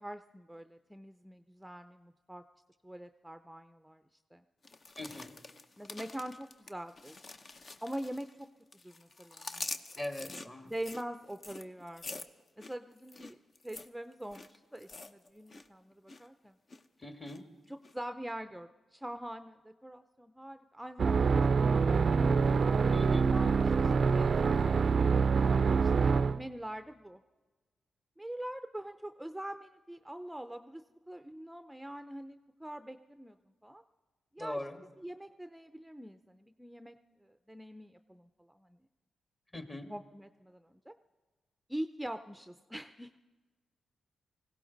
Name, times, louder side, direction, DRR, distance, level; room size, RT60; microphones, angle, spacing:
voice 1, 0.0-2.4 2.8-4.0 4.3-4.4 5.1-5.3 5.8-7.2 7.8-8.5 8.8-9.7 10.2-10.4 10.7-12.2 12.6-13.4 13.6-16.5 17.7-21.8 22.8-27.2 28.2-33.4 33.6-33.8 34.3-34.6 35.0-38.8 39.9-40.9 41.7-43.2, right 1 dB, 5° right, 9 dB, 0.5 m, -44 dB
sound 1, 4.6-8.4 8.7-15.7 15.9-16.3 16.7-17.4 17.8-17.9, left 3 dB, 50° left, 0.8 m, -46 dB
voice 2, 5.0-5.3 10.0-10.7 17.0-17.4 22.9-23.3 34.4-34.8 39.5-39.9, left 1 dB, 25° left, 6 dB, 1.6 m, -41 dB
sound 2, 21.0-26.4, right 5 dB, 55° right, 0.4 m, -26 dB
20.0 x 16.5 x 4.0 m, 1.3 s
cardioid pair, 60°, 0 cm